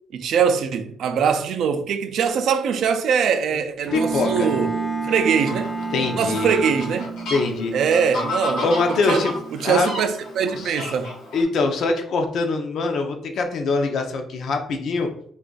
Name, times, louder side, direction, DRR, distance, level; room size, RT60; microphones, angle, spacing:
voice 1, 0.1-4.8 5.1-5.7 6.2-7.1 7.7-8.7 9.1-9.2 9.6-11.1, right 6 dB, 75° right, 0.3 m, -22 dB
voice 2, 3.9-4.5 5.9-6.5 7.3-7.7 8.6-9.3 9.6-9.9 10.5-10.7 11.3-15.1, left 3 dB, 70° left, 0.5 m, -23 dB
Bowed string instrument, 3.9-7.6, left 1 dB, ahead, 0.5 m, -34 dB
sound 1, 3.9-10.9, right 6 dB, 40° right, 0.7 m, -32 dB
Fowl, 5.3-11.4, left 1 dB, 85° left, 1.0 m, -32 dB
2.4 x 2.4 x 3.8 m
cardioid pair, 90°, 0 cm